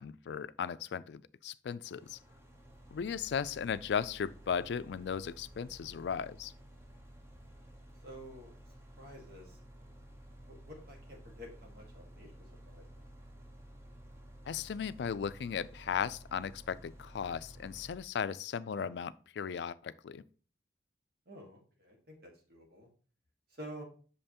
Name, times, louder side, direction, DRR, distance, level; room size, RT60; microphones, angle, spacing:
voice 1, 0.0-2.2 2.9-6.5 14.5-20.2, left 7 dB, 70° left, 0.3 m, -36 dB
sound 1, 1.8-17.9, right 1 dB, 15° right, 0.8 m, -54 dB
voice 2, 8.0-8.5 9.0-9.9 10.5-12.9 21.3-22.9 23.6-23.8, equal, 55° right, 1.7 m, -50 dB
6.5 x 5.4 x 2.9 m
head